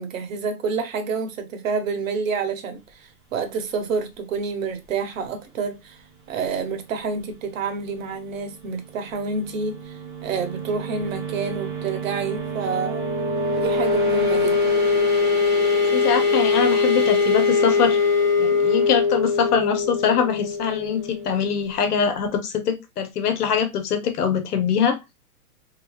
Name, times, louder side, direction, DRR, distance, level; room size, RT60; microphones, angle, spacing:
voice 1, 0.0-6.0 6.3-13.1 13.6-14.7, right 5 dB, 55° right, 1.0 m, -28 dB
sound 1, 9.3-21.8, left 4 dB, 15° right, 0.4 m, -22 dB
voice 2, 15.9-18.0 18.4-25.0, left 7 dB, 75° left, 1.2 m, -23 dB
3.4 x 3.1 x 2.4 m
hypercardioid pair, 155°, 46 cm